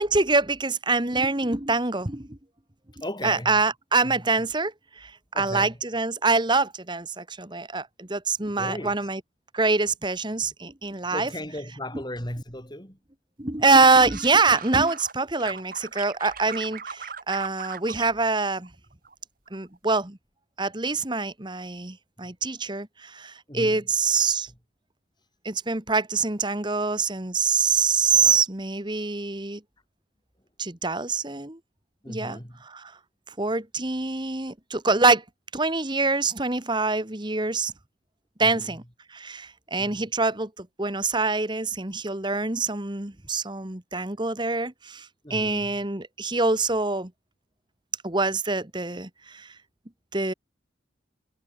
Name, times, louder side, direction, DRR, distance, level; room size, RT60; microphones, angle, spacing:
voice 1, 0.0-2.4 3.2-5.1 5.4-9.2 9.5-11.3 13.4-18.7 19.5-20.2 20.6-24.5 25.4-29.6 30.6-31.6 32.1-32.4 32.7-32.8 33.4-35.2 35.5-37.7 38.4-38.8 39.1-47.1 48.0-49.5 50.1-50.3, right 3 dB, 25° right, 1.5 m, -25 dB
voice 2, 3.0-3.6 4.0-4.2 5.3-5.8 8.5-9.1 10.4-10.5 11.0-13.0 22.2-22.3 23.5-23.9 24.5-24.6 32.0-32.6 38.4-38.8 39.8-40.0 45.2-45.9, left 1 dB, 20° left, 7.2 m, -37 dB
sound 1, 13.7-15.1 15.4-18.1 18.4-19.1 19.5-19.9, right 6 dB, 45° right, 7.0 m, -39 dB
head